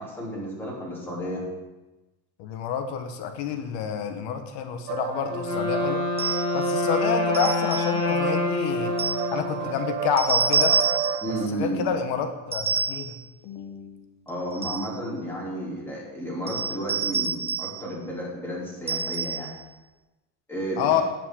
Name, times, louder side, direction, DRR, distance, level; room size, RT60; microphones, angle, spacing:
voice 1, 0.0-1.5 11.2-11.9 14.3-19.5 20.5-20.9, right 1 dB, 5° left, -6 dB, 3.1 m, -32 dB
voice 2, 2.4-6.0 6.5-8.9 9.3-10.8 11.5-13.2 13.4-14.0 20.8-21.0, left 8 dB, 55° left, 6 dB, 1.4 m, -28 dB
sound 1, 4.9-11.5, right 8 dB, 40° right, 0.6 m, -30 dB
Wind instrument woodwind instrument, 5.3-10.1, left 5 dB, 35° left, 1.8 m, -28 dB
sound 2, 6.2-6.6 7.3-8.0 9.0-9.3 10.2-11.3 12.5-13.2 14.3-14.9 16.5-17.8 18.9-19.6, right 5 dB, 10° right, 1.1 m, -27 dB
17.5 x 5.9 x 3.8 m, 1.1 s
cardioid pair, 150°, 48 cm